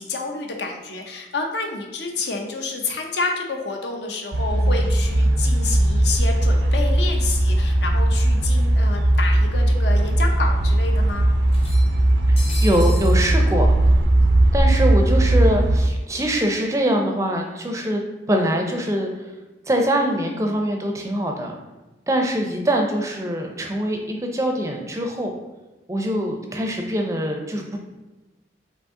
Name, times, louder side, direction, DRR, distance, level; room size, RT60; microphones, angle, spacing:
voice 1, 0.0-11.3, left 3 dB, 70° left, 3 dB, 0.7 m, -29 dB
sound 1, 4.3-15.9, right 1 dB, 75° right, 0.4 m, -18 dB
sound 2, 8.5-8.6 9.6-9.7 10.1-10.2 11.5-13.2, left 1 dB, 30° left, 0.7 m, -37 dB
voice 2, 12.3-13.7 14.5-19.3 19.7-21.6 22.1-25.3 25.9-27.8, equal, 15° right, 2 dB, 0.4 m, -23 dB
5.2 x 2.8 x 3.6 m, 1.1 s
head